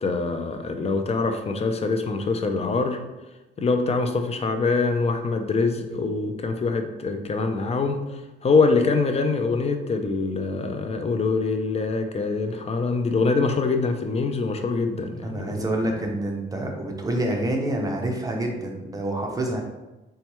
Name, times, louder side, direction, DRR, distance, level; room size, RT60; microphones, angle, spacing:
voice 1, 0.0-3.0 3.6-15.7, left 4 dB, 30° left, 6 dB, 0.4 m, -24 dB
voice 2, 15.2-19.6, right 1 dB, 20° right, 1 dB, 0.7 m, -27 dB
4.2 x 2.3 x 2.9 m, 1.1 s
cardioid pair, 90°, 20 cm